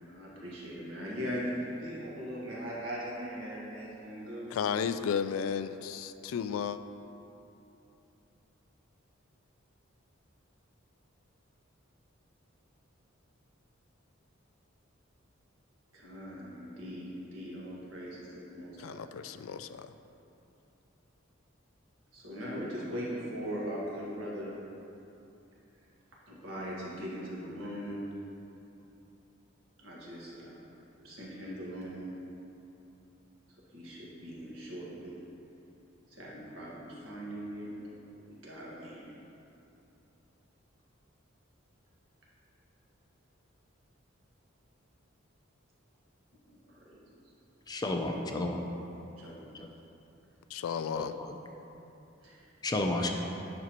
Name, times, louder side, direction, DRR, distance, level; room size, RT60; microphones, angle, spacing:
voice 1, 0.0-4.5 15.9-19.0 22.1-24.5 26.3-28.0 29.8-30.8 31.0-32.1 33.7-35.1 36.1-37.7 38.1-39.2 46.5-47.0 49.2-49.4 52.2-52.4, equal, 75° right, -6 dB, 1.7 m, -40 dB
voice 2, 4.5-6.8 18.8-19.9 50.5-51.2, left 7 dB, 90° left, 11 dB, 0.3 m, -33 dB
voice 3, 47.7-48.6 51.0-51.3 52.6-53.1, left 2 dB, 20° left, 3 dB, 0.4 m, -31 dB
9.4 x 6.0 x 3.0 m, 2.9 s
head